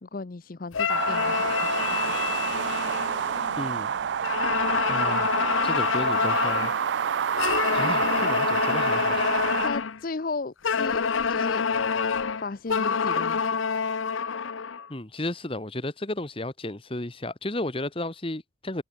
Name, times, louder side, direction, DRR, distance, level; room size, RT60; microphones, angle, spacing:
voice 1, 0.0-2.2 9.6-11.0 11.3-11.6 12.4-13.6, left 3 dB, 45° left, 0.6 m, -35 dB
sound 1, 0.7-3.8 4.2-6.8 7.4-10.0 10.6-14.9, left 6 dB, 80° left, 0.8 m, -27 dB
sound 2, 0.9-9.7, right 7 dB, 60° right, 0.3 m, -28 dB
voice 2, 3.6-4.0 4.9-6.7 7.5-9.2 14.9-18.8, left 1 dB, 25° left, 1.3 m, -33 dB
head